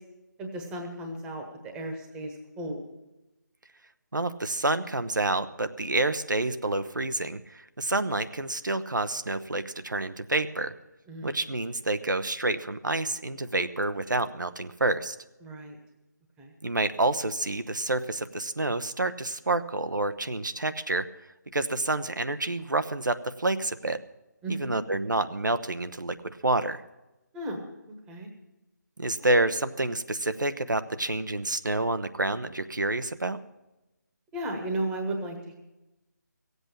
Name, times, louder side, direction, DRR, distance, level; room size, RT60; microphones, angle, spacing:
voice 1, 0.4-2.8 11.1-11.4 15.4-15.8 16.4-16.5 24.4-24.8 27.3-27.6 28.1-28.3 34.3-35.5, right 1 dB, 10° right, 3 dB, 1.2 m, -34 dB
voice 2, 4.1-10.7 11.2-15.2 16.6-21.1 21.5-24.0 24.5-26.8 29.0-33.4, right 2 dB, 80° right, 10 dB, 0.8 m, -28 dB
16.0 x 8.1 x 8.6 m, 0.98 s
figure-of-eight pair, 155°, 10 cm